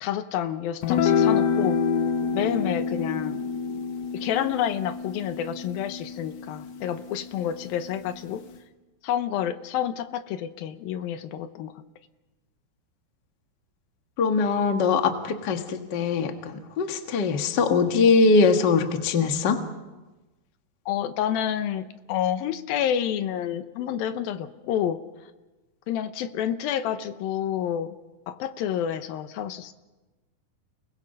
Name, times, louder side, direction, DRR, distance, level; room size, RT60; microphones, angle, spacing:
voice 1, 0.0-1.8 2.3-3.4 4.1-8.4 9.0-11.7 20.9-25.0 25.9-28.0 28.3-29.7, left 10 dB, 85° left, 10 dB, 2.8 m, -29 dB
sound 1, 0.8-7.4, left 6 dB, 60° left, 2.0 m, -27 dB
voice 2, 14.2-19.6, left 4 dB, 45° left, 5 dB, 1.4 m, -22 dB
30.0 x 20.0 x 5.5 m, 1.1 s
omnidirectional pair, 4.2 m